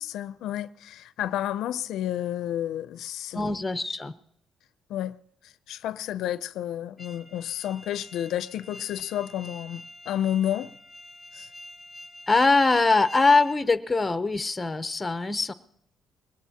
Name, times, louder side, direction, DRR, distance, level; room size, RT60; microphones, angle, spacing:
voice 1, 0.0-3.4 4.9-5.2 5.4-10.7 11.3-11.5, left 11 dB, 85° left, 0.5 m, -31 dB
voice 2, 3.3-4.1 12.3-15.5, left 3 dB, 15° left, 0.7 m, -22 dB
sound 1, 7.0-13.6, left 1 dB, ahead, 1.1 m, -46 dB
21.0 x 18.5 x 2.8 m
cardioid pair, 125°, 0 cm